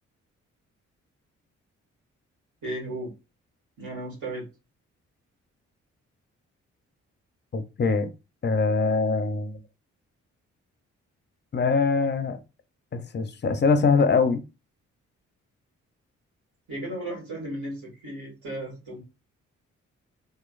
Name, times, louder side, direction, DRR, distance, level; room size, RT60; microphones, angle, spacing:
voice 1, 2.6-3.1 3.8-4.5 16.7-19.0, right 1 dB, 65° right, 1.5 m, -35 dB
voice 2, 7.5-8.1 8.4-9.6 11.5-12.4 12.9-14.4, left 4 dB, 30° left, 0.5 m, -23 dB
3.0 x 2.0 x 2.4 m
hypercardioid pair, 40°, 34 cm